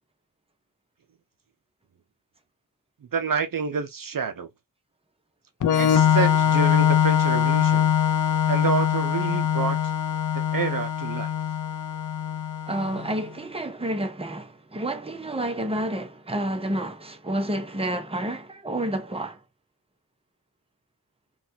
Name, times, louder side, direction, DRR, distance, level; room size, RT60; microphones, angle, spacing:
voice 1, 3.1-4.5 5.7-7.9 8.5-9.9 10.3-11.3, right 6 dB, 65° right, 0.5 m, -28 dB
Organ, 5.6-13.1, left 9 dB, 55° left, 0.5 m, -22 dB
voice 2, 12.7-19.4, right 1 dB, 15° right, 0.7 m, -29 dB
3.9 x 2.3 x 2.7 m
wide cardioid pair, 70°, 37 cm